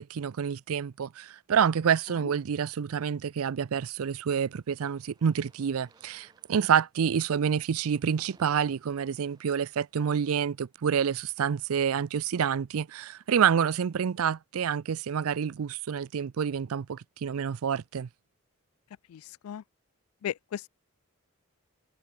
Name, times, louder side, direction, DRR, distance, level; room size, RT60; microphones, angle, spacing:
voice 1, 0.0-18.1, right 7 dB, 85° right, 0.4 m, -28 dB
sound 1, 4.4-10.7, right 2 dB, 20° right, 7.1 m, -66 dB
voice 2, 19.1-19.6 20.2-20.7, left 9 dB, 80° left, 0.3 m, -36 dB
head